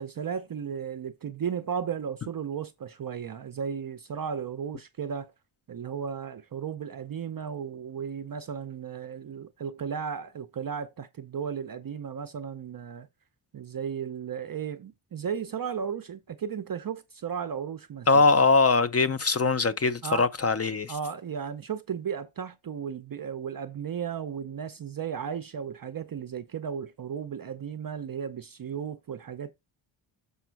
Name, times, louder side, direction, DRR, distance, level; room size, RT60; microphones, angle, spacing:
voice 1, 0.0-5.3 5.7-13.1 13.5-18.2 20.0-20.3 20.9-29.5, right 7 dB, 45° right, 0.5 m, -35 dB
voice 2, 18.1-20.9, left 4 dB, 35° left, 0.4 m, -22 dB
6.9 x 5.1 x 4.5 m
wide cardioid pair, 165°, 49 cm